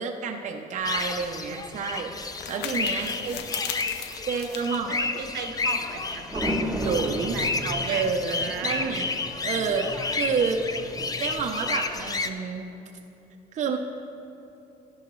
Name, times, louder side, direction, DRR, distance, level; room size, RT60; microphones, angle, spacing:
voice 1, 0.0-3.4 4.3-4.9 6.8-7.4 7.9-9.1 9.4-10.6 11.2-12.7 13.5-13.8, right 5 dB, 45° right, 2 dB, 0.7 m, -29 dB
sound 1, 0.8-6.0, left 9 dB, 85° left, 0.7 m, -39 dB
sound 2, 0.8-12.3, left 4 dB, 20° left, 0.5 m, -31 dB
voice 2, 2.9-3.3 4.7-9.0, right 6 dB, 70° right, 6 dB, 0.9 m, -37 dB
sound 3, 5.8-11.4, equal, 10° right, 1.0 m, -34 dB
12.0 x 11.0 x 3.1 m, 2.9 s
cardioid pair, 110°, 17 cm